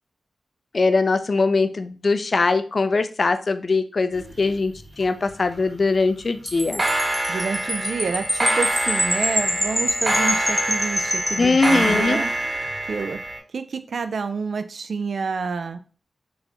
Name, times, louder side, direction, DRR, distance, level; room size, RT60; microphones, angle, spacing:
voice 1, 0.7-6.8 11.4-12.2, left 3 dB, 60° left, 10 dB, 0.4 m, -21 dB
sound 1, 4.1-5.7 6.6-13.4, right 1 dB, 40° right, 1.8 m, -26 dB
Wind chime, 6.5-12.1, equal, 5° left, 0.6 m, -26 dB
voice 2, 7.3-12.3 12.9-13.2 13.5-15.8, right 5 dB, 80° right, 10 dB, 0.3 m, -28 dB
3.8 x 2.5 x 2.8 m, 0.37 s
cardioid pair, 50°, 0 cm